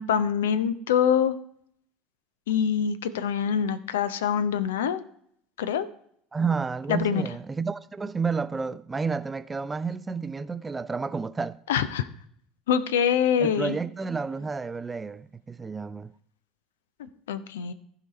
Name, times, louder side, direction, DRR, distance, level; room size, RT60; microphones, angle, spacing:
voice 1, 0.0-1.4 2.5-5.1 5.6-5.9 6.9-7.3 11.7-12.1 12.7-13.8 17.3-17.7, left 8 dB, 70° left, 0.6 m, -25 dB
voice 2, 6.3-11.6 13.4-16.1, right 5 dB, 20° right, 0.4 m, -30 dB
15.0 x 5.0 x 4.1 m
figure-of-eight pair, 70°, 0 cm